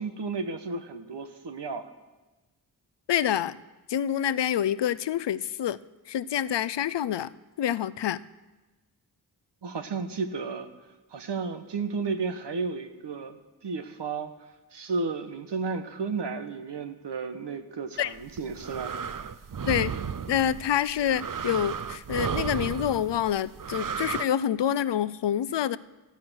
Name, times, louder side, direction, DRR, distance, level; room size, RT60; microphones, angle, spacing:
voice 1, 0.0-1.9 9.6-10.7 11.1-14.3 14.7-19.0, right 4 dB, 80° right, 8 dB, 1.4 m, -33 dB
voice 2, 3.1-3.6 3.9-5.8 6.1-7.3 7.6-8.2 18.0-18.1 19.7-19.9 20.3-25.8, left 10 dB, 85° left, 17 dB, 0.6 m, -27 dB
sound 1, 18.2-24.2, right 7 dB, 50° right, 0.8 m, -34 dB
14.5 x 14.0 x 6.3 m, 1.1 s
cardioid pair, 60°, 41 cm